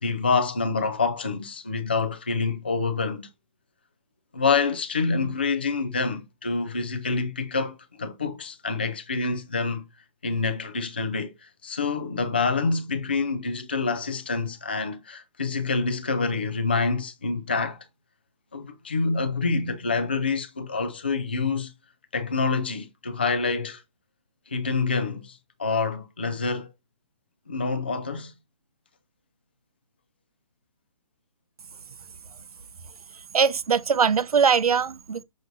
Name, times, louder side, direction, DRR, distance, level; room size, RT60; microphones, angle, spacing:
voice 1, 0.0-3.3 4.3-9.9 10.2-17.8 18.5-21.7 22.1-23.8 24.5-26.7 27.5-28.3, left 4 dB, 15° left, 0.3 m, -27 dB
voice 2, 33.3-35.2, right 6 dB, 85° right, 0.8 m, -21 dB
6.6 x 6.0 x 2.6 m
hypercardioid pair, 175°, 19 cm